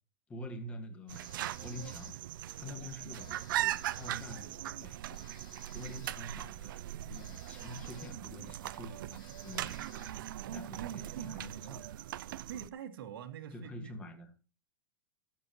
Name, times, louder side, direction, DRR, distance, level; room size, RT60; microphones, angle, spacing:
voice 1, 0.3-1.3 1.6-2.1 2.6-5.0 5.7-11.8 13.5-14.3, left 1 dB, 10° left, 1.8 m, -47 dB
Telephone, 1.1-2.3 3.1-4.3 5.1-6.3 7.1-8.3 8.7-8.8 9.1-10.3, left 7 dB, 80° left, 5.2 m, -59 dB
sound 1, 1.1-12.7, right 13 dB, 65° right, 0.5 m, -40 dB
voice 2, 10.5-11.9 12.5-13.9, right 8 dB, 80° right, 2.1 m, -44 dB
21.0 x 7.5 x 3.1 m
supercardioid pair, 175°, 12 cm